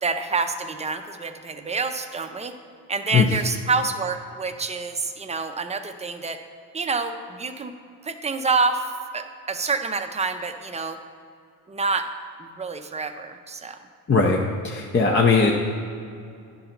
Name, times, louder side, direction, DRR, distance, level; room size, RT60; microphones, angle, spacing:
voice 1, 0.0-2.5 2.9-6.4 6.7-7.7 8.0-8.9 9.1-11.0 11.7-12.1 12.4-13.8, right 4 dB, 15° right, 7 dB, 0.5 m, -27 dB
voice 2, 14.1-15.5, left 4 dB, 30° left, 0 dB, 0.7 m, -19 dB
9.8 x 3.9 x 5.8 m, 2.4 s
cardioid pair, 90°, 41 cm